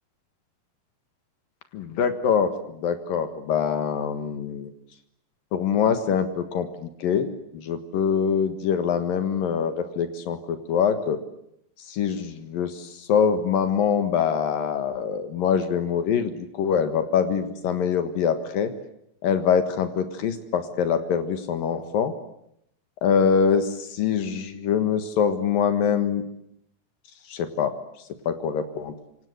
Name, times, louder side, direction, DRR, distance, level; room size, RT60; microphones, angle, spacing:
voice 1, 1.7-2.5 2.8-4.7 5.5-11.2 11.9-18.7 19.2-22.1 23.0-26.2 27.3-27.7 28.3-28.9, left 7 dB, 75° left, 9 dB, 3.3 m, -24 dB
27.0 x 26.5 x 8.1 m, 0.75 s
omnidirectional pair, 4.0 m